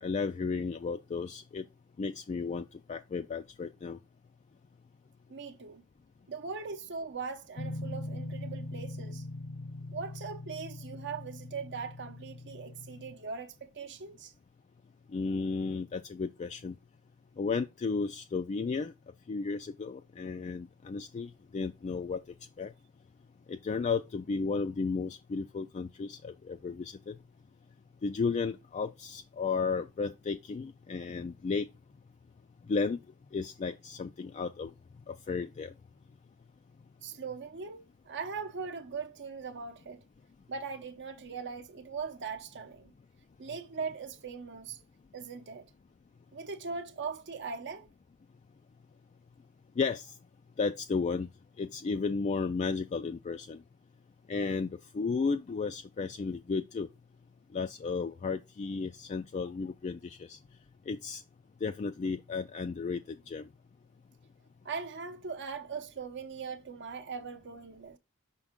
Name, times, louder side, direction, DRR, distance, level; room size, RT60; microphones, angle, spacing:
voice 1, 0.0-1.6 2.0-4.0 15.1-16.8 17.4-18.9 19.3-22.2 22.6-22.7 23.5-27.2 28.0-31.7 32.7-33.0 33.3-34.7 35.1-35.7 49.8-50.1 50.6-51.3 51.6-53.6 54.3-56.9 57.5-60.4 60.9-61.2 61.6-63.5, left 4 dB, 30° left, 0.3 m, -33 dB
voice 2, 5.3-5.8 6.3-9.3 9.9-14.3 37.0-40.0 40.5-42.9 43.4-44.8 45.1-45.7 46.3-47.9 64.6-68.0, right 5 dB, 55° right, 0.8 m, -40 dB
sound 1, 7.6-13.2, left 2 dB, 70° left, 0.6 m, -41 dB
6.1 x 4.3 x 3.6 m
head